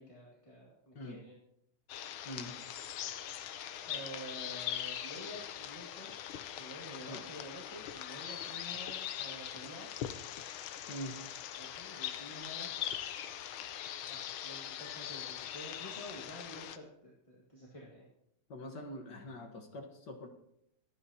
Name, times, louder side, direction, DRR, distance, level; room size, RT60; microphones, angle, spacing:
voice 1, 0.0-1.3 3.8-6.1 6.6-9.9 11.5-12.7 14.0-18.1, equal, 15° left, -4 dB, 1.6 m, -49 dB
sound 1, 1.9-16.8, left 10 dB, 75° left, 1.5 m, -41 dB
voice 2, 2.2-2.5 7.1-7.2 10.9-11.1 18.5-20.3, equal, 55° left, 4 dB, 1.8 m, -44 dB
26.0 x 9.0 x 2.8 m, 0.78 s
omnidirectional pair, 2.4 m